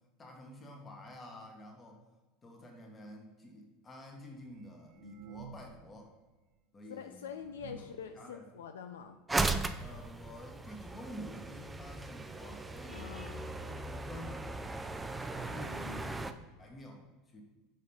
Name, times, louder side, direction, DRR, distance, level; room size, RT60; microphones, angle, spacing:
voice 1, 0.2-2.0 2.4-6.1 6.7-7.3 7.7-7.9 8.1-8.4 9.8-13.1 13.4-16.0 16.6-17.4, equal, 25° left, 2 dB, 1.5 m, -50 dB
sound 1, 4.4-6.0 6.3-6.4 7.0-7.1 7.4-8.1 8.8-8.9 9.2-9.3 9.5-9.8 10.7-10.8 11.0-11.1 11.8-11.9 12.1-12.2, right 5 dB, 60° right, 0.5 m, -52 dB
voice 2, 6.9-9.2 12.9-13.5 15.5-16.4, left 7 dB, 75° left, 7 dB, 0.3 m, -46 dB
sound 2, 9.3-16.3, right 3 dB, 15° right, 0.4 m, -37 dB
6.3 x 4.2 x 5.4 m, 1.2 s
hypercardioid pair, 80°, 0 cm